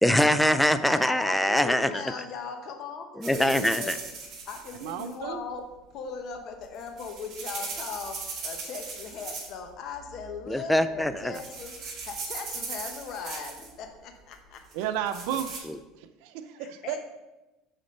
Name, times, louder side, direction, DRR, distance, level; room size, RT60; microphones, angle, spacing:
voice 1, 0.0-2.2 3.2-4.0 10.5-11.3 15.6-15.8, left 1 dB, 5° left, 12 dB, 0.4 m, -23 dB
voice 2, 0.8-4.0 4.4-5.6 5.9-14.6 16.6-17.0, left 5 dB, 55° left, 5 dB, 1.0 m, -39 dB
sound 1, 3.2-5.1 6.6-9.7 9.9-10.4 10.9-11.1 11.3-13.7 14.7-15.6, right 4 dB, 40° right, 2.3 m, -38 dB
voice 3, 4.8-5.4 14.7-15.7 16.0-17.0, right 9 dB, 75° right, 9 dB, 0.4 m, -33 dB
6.5 x 4.1 x 5.3 m, 1.0 s
supercardioid pair, 110°, 0 cm